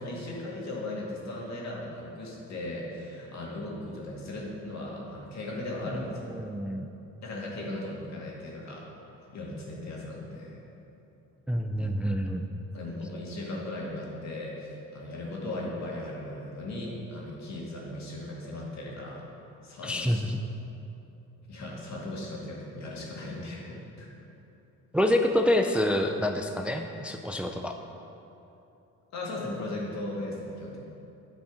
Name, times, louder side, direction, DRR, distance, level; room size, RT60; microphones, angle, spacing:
voice 1, 0.0-6.2 7.2-8.9 9.3-10.6 12.7-19.3 19.6-20.2 21.5-24.1 29.1-30.8, left 1 dB, 65° left, -3 dB, 2.1 m, -37 dB
voice 2, 6.3-6.9 11.5-12.5 19.8-20.4 24.9-27.8, left 1 dB, 5° right, 4 dB, 0.4 m, -27 dB
9.6 x 5.3 x 5.0 m, 2.8 s
cardioid pair, 90°, 30 cm